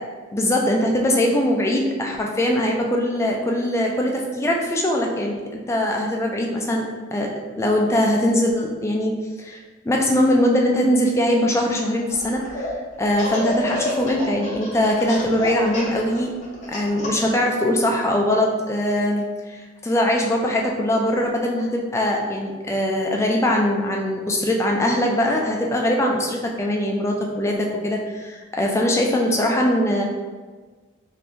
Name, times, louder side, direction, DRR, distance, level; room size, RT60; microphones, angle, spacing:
voice 1, 0.3-12.7 13.0-16.3 16.7-30.0, left 1 dB, 15° left, 0 dB, 0.3 m, -22 dB
Laughter, 12.1-12.7 13.1-17.3, left 1 dB, 40° left, 0.8 m, -29 dB
2.8 x 2.6 x 3.4 m, 1.4 s
head